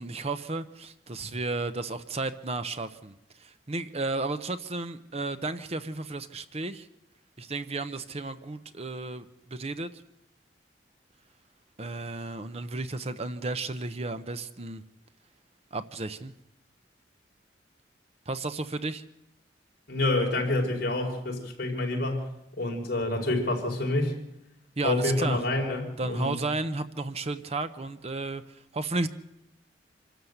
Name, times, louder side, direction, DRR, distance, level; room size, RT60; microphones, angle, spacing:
voice 1, 0.0-6.9 7.4-10.0 11.8-14.8 15.7-16.3 18.3-19.0 24.8-25.4 26.0-29.1, right 3 dB, 35° right, 10 dB, 0.8 m, -33 dB
voice 2, 19.9-22.3 22.6-24.1 24.8-26.4, left 2 dB, 55° left, 0 dB, 5.0 m, -27 dB
26.0 x 13.0 x 8.1 m, 0.87 s
head